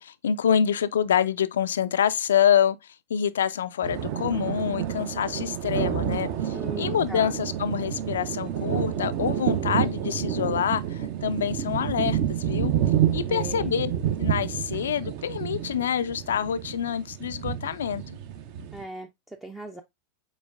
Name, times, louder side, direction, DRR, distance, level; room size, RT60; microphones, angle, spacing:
voice 1, 0.0-12.7 13.1-13.9 14.2-18.2, left 8 dB, 65° left, 0.3 m, -26 dB
sound 1, 3.8-18.8, right 10 dB, 45° right, 0.7 m, -29 dB
voice 2, 6.5-7.4 13.3-13.8 18.7-19.8, right 2 dB, 5° right, 0.5 m, -39 dB
5.1 x 4.3 x 2.4 m
figure-of-eight pair, 90°, 0 cm